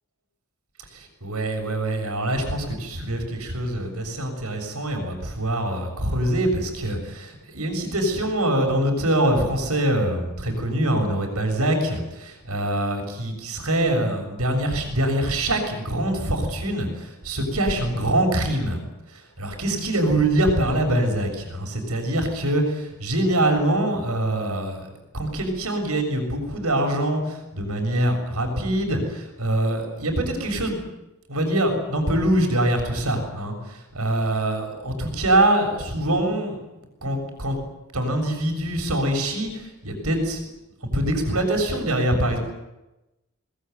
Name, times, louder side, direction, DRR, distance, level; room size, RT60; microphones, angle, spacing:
voice 1, 0.9-18.8 19.1-24.9 25.1-30.8 31.3-36.6 37.0-37.6 37.9-40.5 40.9-42.4, right 1 dB, 80° right, 4 dB, 6.8 m, -24 dB
23.0 x 21.0 x 9.4 m, 0.98 s
head